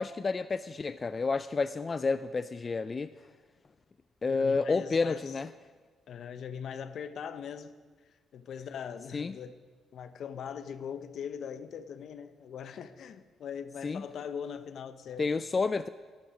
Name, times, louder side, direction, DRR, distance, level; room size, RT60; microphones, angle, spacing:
voice 1, 0.0-3.1 4.2-5.5 9.1-9.3 13.8-14.0 15.2-15.9, left 4 dB, 35° left, 0.3 m, -30 dB
voice 2, 4.3-5.3 6.1-7.7 8.3-9.6 9.9-15.3, left 7 dB, 65° left, 0.7 m, -41 dB
11.5 x 11.0 x 5.1 m
cardioid pair, 90°, 0 cm